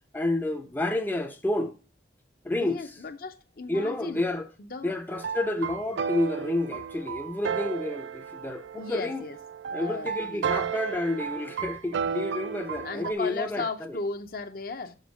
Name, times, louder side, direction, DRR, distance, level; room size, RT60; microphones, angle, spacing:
voice 1, 0.1-1.7 2.4-2.8 3.7-4.5 4.8-9.2 9.7-14.0, left 2 dB, 10° left, 0.5 m, -30 dB
voice 2, 2.6-4.3 4.6-5.0 8.8-9.4 9.7-10.5 12.8-15.0, left 3 dB, 55° left, 0.7 m, -36 dB
sound 1, 5.1-13.1, right 7 dB, 85° right, 0.4 m, -33 dB
7.0 x 5.2 x 5.1 m
head